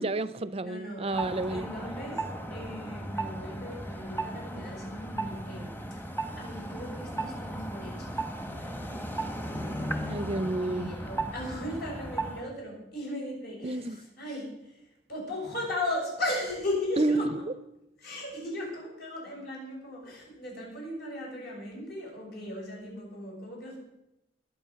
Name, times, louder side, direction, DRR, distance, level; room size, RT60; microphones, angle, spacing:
voice 1, 0.0-1.7 10.1-10.9 13.6-14.0 17.0-17.3, right 2 dB, 35° right, 15 dB, 0.6 m, -29 dB
voice 2, 0.6-1.1 1.5-2.2 2.5-6.0 6.4-9.1 9.5-17.4 18.0-23.8, left 1 dB, 60° left, -3 dB, 7.1 m, -37 dB
sound 1, 1.1-12.5, right 1 dB, 10° left, 1.2 m, -36 dB
21.5 x 8.9 x 5.8 m, 0.90 s
head